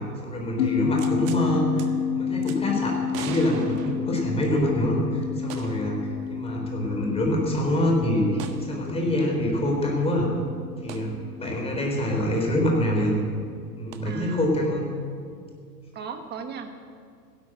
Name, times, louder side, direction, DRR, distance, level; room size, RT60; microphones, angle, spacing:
voice 1, 0.2-6.0 6.2-10.3 10.8-13.2 13.8-14.8, equal, 10° left, 0 dB, 3.9 m, -25 dB
sound 1, 0.6-13.4, left 8 dB, 65° left, 1.6 m, -31 dB
sound 2, 1.0-1.4 1.8-1.9 2.4-2.6 3.1-4.6 5.5-5.9 6.3-6.4 8.4-8.7 10.9-11.1 13.9-14.0, right 8 dB, 55° right, 1.6 m, -40 dB
voice 2, 14.0-14.5 15.9-16.9, right 6 dB, 20° right, 6 dB, 1.5 m, -37 dB
16.0 x 11.5 x 7.8 m, 2.2 s
hypercardioid pair, 125°, 50 cm